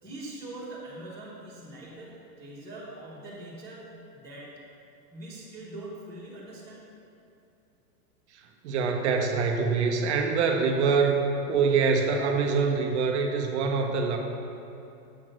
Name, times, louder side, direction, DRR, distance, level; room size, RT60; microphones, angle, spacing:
voice 1, 0.0-3.8 4.1-4.5 5.1-6.8, right 1 dB, 5° left, -12 dB, 0.5 m, -42 dB
voice 2, 8.6-14.2, right 5 dB, 45° right, 3 dB, 0.7 m, -25 dB
7.6 x 4.6 x 6.0 m, 2.8 s
supercardioid pair, 160°, 49 cm